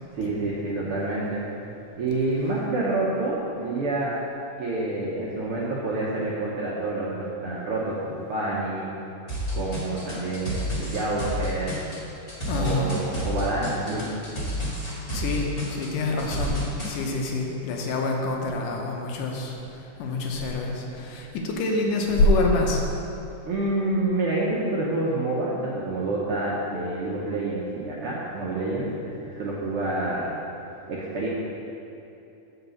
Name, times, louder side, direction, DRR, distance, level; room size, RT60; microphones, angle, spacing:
voice 1, 0.1-1.4 2.0-4.1 4.6-8.9 9.5-11.7 12.6-14.2 23.5-30.3 30.9-31.3, right 2 dB, 65° right, -6 dB, 1.4 m, -28 dB
sound 1, 9.3-16.9, equal, 20° left, 0.9 m, -30 dB
voice 2, 12.5-13.0 15.1-22.8, left 2 dB, 90° left, 0 dB, 2.5 m, -26 dB
8.0 x 4.9 x 6.9 m, 2.9 s
omnidirectional pair, 3.6 m